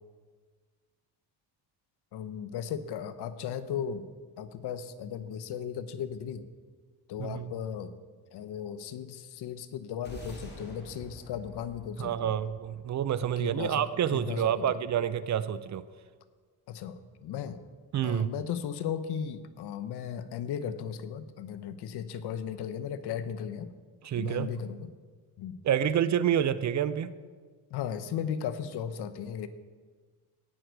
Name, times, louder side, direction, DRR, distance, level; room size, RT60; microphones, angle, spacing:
voice 1, 2.1-4.1 4.4-6.5 7.1-7.9 8.3-12.4 13.4-13.8 14.1-14.6 16.7-17.6 18.0-23.7 24.2-24.9 25.4-25.6 27.7-29.5, left 8 dB, 75° left, 11 dB, 0.8 m, -36 dB
voice 2, 7.2-7.5 12.0-15.8 17.9-18.3 24.0-24.5 25.6-27.1, right 9 dB, 45° right, 15 dB, 0.5 m, -28 dB
sound 1, 10.0-14.5, equal, 25° left, 2.8 m, -48 dB
17.5 x 6.3 x 4.6 m, 1.5 s
cardioid pair, 115°, 40 cm